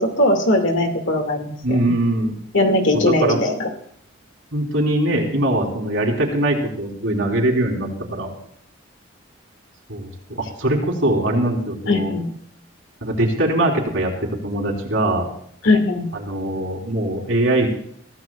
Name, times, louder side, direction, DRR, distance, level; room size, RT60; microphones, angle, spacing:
voice 1, 0.0-2.0 2.5-3.7 11.9-12.3 15.6-16.1, left 1 dB, 70° left, 3 dB, 2.2 m, -19 dB
voice 2, 1.6-2.4 3.1-3.4 4.5-8.3 9.9-10.1 10.4-12.1 13.0-14.1 14.4-15.3 16.1-17.7, right 1 dB, 75° right, -1 dB, 3.8 m, -21 dB
23.0 x 15.5 x 2.4 m, 0.65 s
head